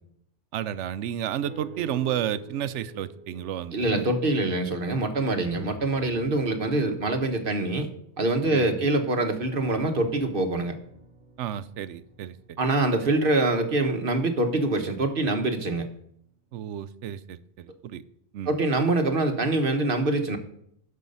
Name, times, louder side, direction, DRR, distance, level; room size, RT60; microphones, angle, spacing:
voice 1, 0.5-4.1 8.5-8.7 11.4-12.6 16.5-18.0 18.3-18.5, right 10 dB, 80° right, 15 dB, 0.9 m, -32 dB
sound 1, 1.4-4.8 5.2-8.9 9.6-13.8 14.4-14.5, right 4 dB, 10° right, 1.6 m, -48 dB
voice 2, 3.7-7.9 8.2-10.7 12.6-15.9 18.5-20.4, right 2 dB, 50° right, 6 dB, 1.3 m, -25 dB
12.0 x 5.7 x 5.4 m, 0.70 s
omnidirectional pair, 1.2 m